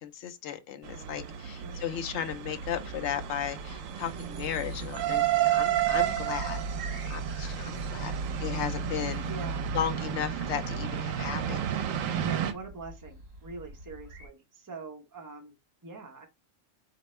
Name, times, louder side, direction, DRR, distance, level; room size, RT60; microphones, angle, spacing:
voice 1, 0.0-6.6 7.1-8.1 8.4-9.3 9.7-11.6, left 9 dB, 65° left, 0.8 m, -35 dB
sound 1, 0.8-12.5, right 9 dB, 85° right, 1.0 m, -31 dB
voice 2, 0.9-1.8 7.5-8.1 9.2-9.6 12.1-15.6 15.8-16.3, right 3 dB, 15° right, 0.8 m, -44 dB
sound 2, 2.6-14.3, right 1 dB, 55° right, 1.3 m, -48 dB
4.4 x 2.8 x 3.1 m
omnidirectional pair, 1.3 m